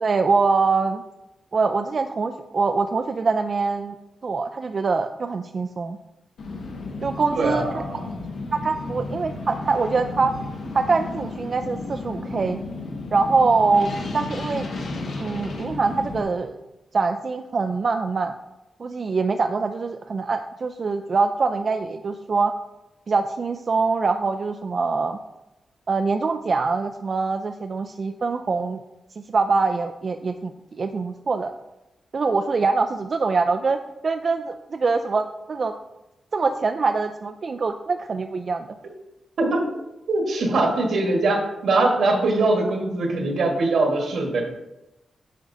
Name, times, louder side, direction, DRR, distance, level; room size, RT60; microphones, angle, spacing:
voice 1, 0.0-1.0 1.5-3.9 4.2-6.0 7.0-7.8 8.5-10.4 10.7-12.6 13.1-14.7 15.2-16.6 16.9-18.3 18.8-22.5 23.1-25.2 25.9-28.8 29.3-30.5 30.8-31.6 32.1-35.7 36.3-38.7, right 4 dB, 45° right, 6 dB, 0.3 m, -24 dB
sound 1, 6.4-16.2, left 2 dB, 85° left, 1.3 m, -33 dB
voice 2, 7.3-8.0 39.4-39.6 40.1-44.4, right 2 dB, 75° right, 1 dB, 1.3 m, -22 dB
9.2 x 5.3 x 2.6 m, 0.95 s
wide cardioid pair, 130°, 0 cm